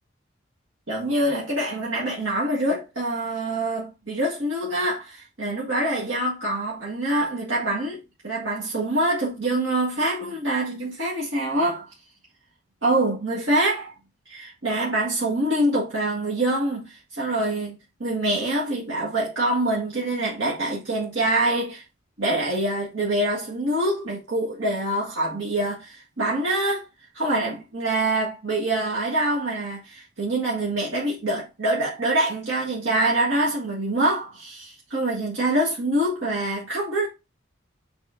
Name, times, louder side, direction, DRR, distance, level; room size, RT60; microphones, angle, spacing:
voice 1, 0.9-8.0 8.2-11.9 12.8-13.9 14.3-17.8 18.0-21.8 22.2-26.9 27.1-37.1, right 1 dB, 75° right, 1.8 m, -25 dB
6.9 x 3.7 x 3.7 m
head